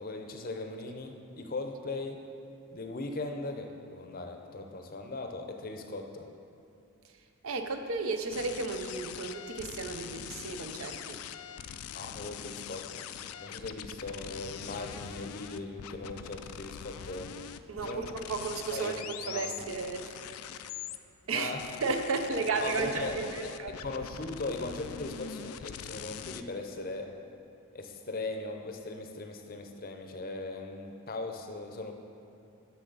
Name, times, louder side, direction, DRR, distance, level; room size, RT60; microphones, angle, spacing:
voice 1, 0.0-2.2 2.7-6.3 11.9-13.0 13.4-17.3 17.8-18.1 18.7-19.5 21.3-21.7 22.6-23.1 23.4-27.1 27.7-31.9, left 2 dB, 40° left, 4 dB, 0.6 m, -39 dB
voice 2, 7.4-11.2 17.7-20.3 21.3-21.5 21.8-23.7, right 4 dB, 70° right, 6 dB, 0.6 m, -33 dB
sound 1, 8.3-21.0 21.6-26.4, left 9 dB, 85° left, 0.3 m, -43 dB
10.0 x 7.0 x 4.0 m, 2.6 s
head